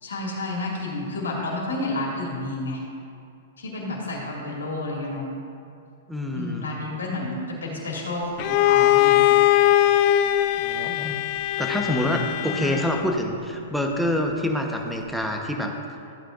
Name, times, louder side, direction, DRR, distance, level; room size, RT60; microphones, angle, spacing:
voice 1, 0.0-2.8 3.6-5.3 6.3-9.3 12.4-12.8, left 2 dB, 80° left, -2 dB, 2.4 m, -30 dB
voice 2, 6.1-6.7 10.6-11.2 11.6-15.7, left 1 dB, ahead, 2 dB, 1.1 m, -26 dB
Bowed string instrument, 8.4-13.2, left 14 dB, 45° left, 0.4 m, -20 dB
14.0 x 8.8 x 2.6 m, 2.4 s
hypercardioid pair, 115°, 0 cm